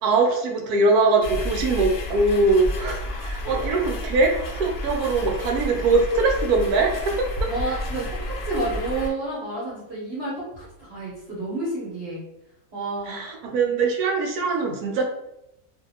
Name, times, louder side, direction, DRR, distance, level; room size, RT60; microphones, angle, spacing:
voice 1, 0.0-7.3 7.7-7.8 13.1-15.0, right 3 dB, 80° right, 2 dB, 1.1 m, -22 dB
sound 1, 1.2-9.1, left 1 dB, 65° left, 0.8 m, -31 dB
voice 2, 7.5-12.2 12.7-13.3, right 2 dB, 45° right, -8 dB, 1.1 m, -30 dB
2.6 x 2.5 x 2.7 m, 0.86 s
omnidirectional pair, 1.6 m